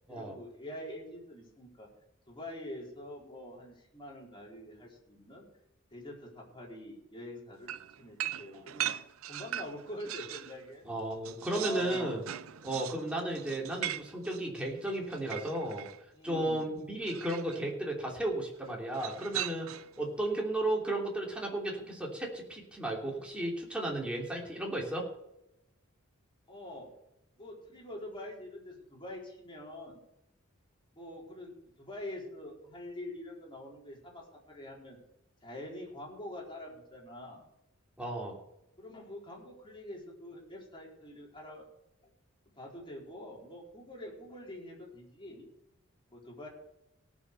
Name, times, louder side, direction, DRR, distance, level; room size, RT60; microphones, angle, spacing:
voice 1, 0.1-1.9 2.3-5.5 5.9-7.7 8.0-8.9 9.3-10.9 11.5-12.2 16.1-16.8 26.5-26.9 27.3-30.0 30.9-35.0 35.4-37.4 38.8-41.6 42.0-42.1 42.5-45.5 46.1-46.5, left 1 dB, 25° left, -2 dB, 4.3 m, -45 dB
sound 1, 7.7-10.6 10.9-16.0 17.0-17.6 18.9-20.0, right 11 dB, 85° right, 0.6 m, -40 dB
voice 2, 10.8-12.2 12.6-15.9 16.2-19.7 20.0-25.1 38.0-38.4, right 1 dB, 5° right, -2 dB, 3.1 m, -34 dB
17.5 x 6.4 x 6.7 m, 0.85 s
head